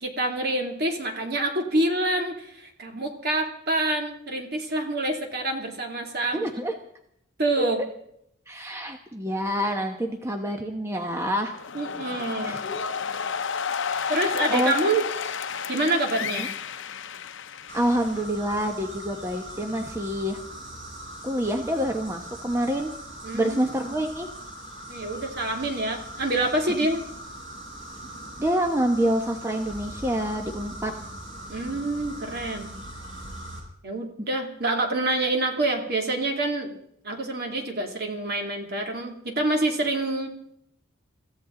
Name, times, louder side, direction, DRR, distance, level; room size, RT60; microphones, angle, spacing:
voice 1, 0.0-6.5 7.4-7.8 11.7-12.6 14.1-15.0 15.7-16.5 23.2-23.7 24.9-27.0 31.5-32.7 33.8-36.7 37.0-40.3, right 2 dB, 50° right, 2 dB, 2.6 m, -27 dB
voice 2, 6.3-6.7 7.6-7.7 8.5-11.5 12.4-12.8 13.9-14.7 16.4-16.5 17.7-20.4 21.2-22.9 23.3-24.3 28.4-30.9, equal, 15° right, 4 dB, 1.0 m, -27 dB
sound 1, 11.3-18.2, left 6 dB, 70° left, 0.8 m, -31 dB
sound 2, 17.7-33.6, right 1 dB, 70° right, 5.9 m, -41 dB
24.5 x 15.0 x 3.8 m, 0.74 s
head